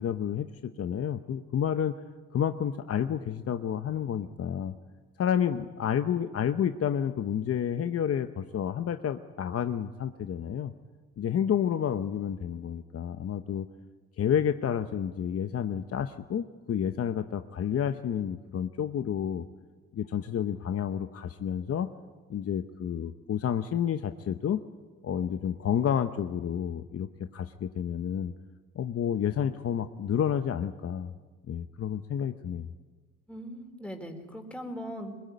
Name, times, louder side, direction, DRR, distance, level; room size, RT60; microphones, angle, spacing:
voice 1, 0.0-2.0 2.3-4.7 5.2-10.7 11.2-13.7 14.2-19.4 19.9-21.9 22.3-24.6 25.0-28.3 28.7-31.1 31.5-32.7, left 8 dB, 50° left, 9 dB, 0.9 m, -30 dB
voice 2, 33.3-35.1, equal, 5° left, 4 dB, 4.0 m, -39 dB
21.5 x 21.0 x 9.4 m, 1.4 s
cardioid pair, 90°, 30 cm